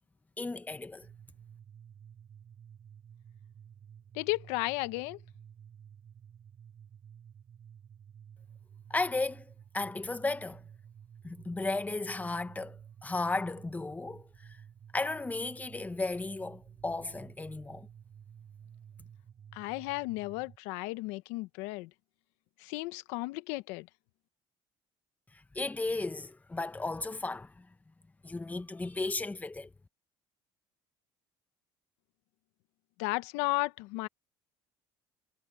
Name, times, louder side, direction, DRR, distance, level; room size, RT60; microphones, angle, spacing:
voice 1, 0.4-1.1 8.9-10.6 11.2-14.6 14.9-17.9 25.5-27.7 28.2-29.7, left 3 dB, 15° left, 1.2 m, -35 dB
sound 1, 1.0-20.6, right 8 dB, 45° right, 4.7 m, -53 dB
voice 2, 4.1-5.2 19.5-21.9 22.6-23.9 33.0-34.1, left 21 dB, 85° left, 0.9 m, -34 dB
supercardioid pair, 95°, 11 cm